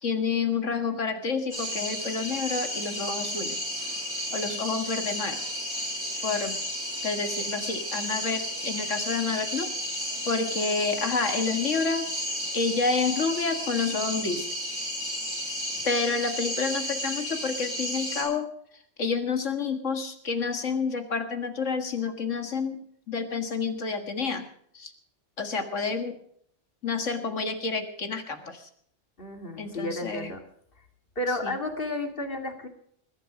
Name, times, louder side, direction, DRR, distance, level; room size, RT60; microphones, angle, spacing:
voice 1, 0.0-3.6 4.3-5.8 6.2-6.6 7.0-9.7 10.3-12.1 12.5-14.5 15.8-18.5 19.0-22.8 23.1-24.5 24.7-24.9 25.4-26.2 26.8-28.7 29.6-30.3 31.4-31.5, left 4 dB, 70° left, 7 dB, 2.1 m, -29 dB
sound 1, 1.5-18.2, equal, 30° right, 6.8 m, -33 dB
voice 2, 29.2-30.4 31.2-32.7, left 1 dB, 45° left, 6 dB, 2.5 m, -32 dB
21.0 x 12.0 x 5.0 m, 0.66 s
omnidirectional pair, 1.3 m